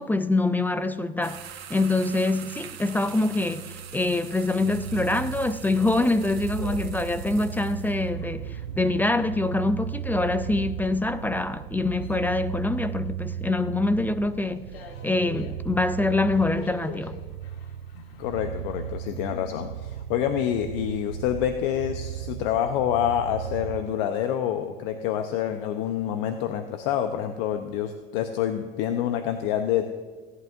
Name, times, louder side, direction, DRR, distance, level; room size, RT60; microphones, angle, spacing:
voice 1, 0.0-1.4 1.7-14.7 15.0-17.2, left 2 dB, 5° left, 0.3 m, -25 dB
sound 1, 1.2-8.0, right 8 dB, 90° right, 1.4 m, -43 dB
sound 2, 3.5-13.5 13.8-22.3, left 3 dB, 80° left, 1.4 m, -47 dB
sound 3, 4.5-23.8, right 11 dB, 70° right, 0.6 m, -36 dB
voice 2, 18.2-29.8, left 10 dB, 60° left, 0.9 m, -27 dB
17.0 x 11.0 x 2.6 m
hypercardioid pair, 100°, 30 cm